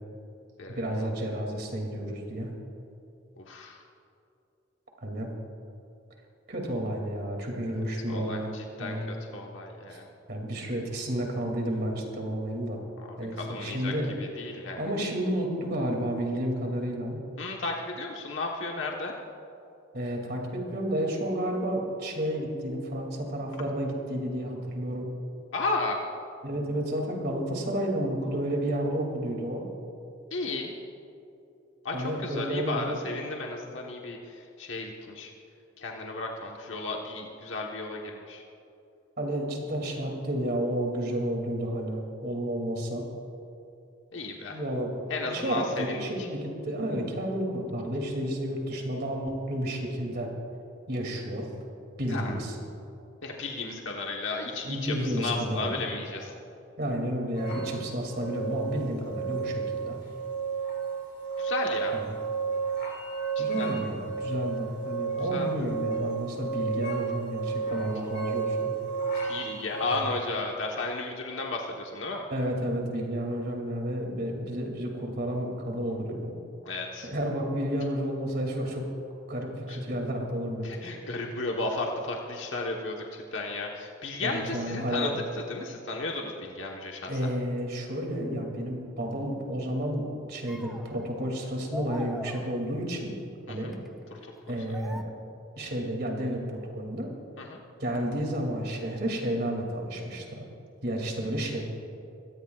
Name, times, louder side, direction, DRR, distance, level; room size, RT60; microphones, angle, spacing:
voice 1, 0.7-2.5 5.0-5.3 6.5-8.5 8.8-9.1 9.9-10.0 10.3-12.8 13.2-14.1 14.8-17.2 19.9-25.1 26.4-29.6 31.9-33.0 39.2-43.1 44.5-50.3 50.9-51.5 52.0-52.6 54.6-55.8 56.8-60.0 61.9-62.2 63.4-68.7 69.9-70.1 72.3-76.3 77.0-78.8 79.3-80.7 84.2-85.1 87.1-93.1 93.5-93.7 94.1-95.0 95.6-97.1 97.8-100.5 100.8-101.6, equal, 55° right, 1 dB, 2.6 m, -31 dB
voice 2, 3.4-3.8 8.1-10.1 13.1-13.9 14.2-14.8 17.4-19.1 25.5-26.0 30.3-30.7 31.8-35.3 35.8-38.4 44.1-44.6 45.1-46.0 52.1-52.3 53.2-56.3 61.4-61.9 63.3-63.7 65.3-65.5 69.2-72.2 76.6-77.1 79.7-79.8 80.6-85.1 85.5-87.1 93.5-93.7 94.1-94.2 94.5-94.6 97.4-97.6, left 3 dB, 80° left, 0 dB, 1.2 m, -34 dB
sound 1, 57.3-70.0, right 5 dB, 60° left, 3.9 m, -32 dB
sound 2, 89.2-89.4 90.5-91.3 91.7-93.0 93.7-93.9 94.7-95.0, equal, ahead, 0.6 m, -42 dB
24.5 x 17.5 x 2.4 m, 2.7 s
head